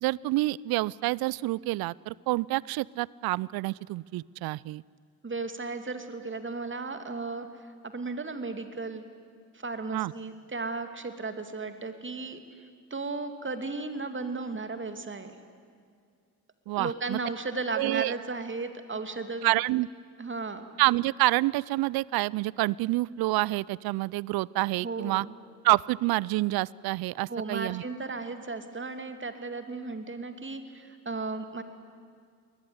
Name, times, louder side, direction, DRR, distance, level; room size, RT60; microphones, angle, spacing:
voice 1, 0.0-4.8 9.9-10.1 16.7-17.2 17.8-18.2 19.4-19.9 20.8-25.3 25.6-27.8, right 19 dB, 50° right, 25 dB, 0.5 m, -27 dB
voice 2, 5.2-7.5 7.8-9.0 9.5-12.4 12.9-15.3 16.8-19.5 20.2-20.7 24.8-25.3 27.3-31.6, right 3 dB, 25° right, 8 dB, 2.6 m, -35 dB
23.0 x 20.0 x 9.6 m, 2.2 s
hypercardioid pair, 50°, 46 cm